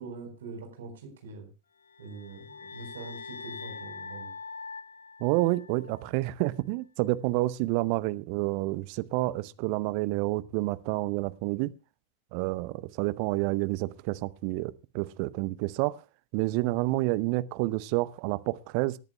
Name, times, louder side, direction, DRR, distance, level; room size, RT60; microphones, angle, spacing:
voice 1, 0.0-1.5 2.0-4.3, right 4 dB, 60° right, 4.4 m, -43 dB
sound 1, 1.8-6.1, left 5 dB, 65° left, 0.8 m, -43 dB
voice 2, 5.2-11.7 12.3-16.0 16.3-19.0, right 19 dB, 45° right, 0.7 m, -29 dB
26.5 x 10.5 x 2.2 m
figure-of-eight pair, 90°, 0 cm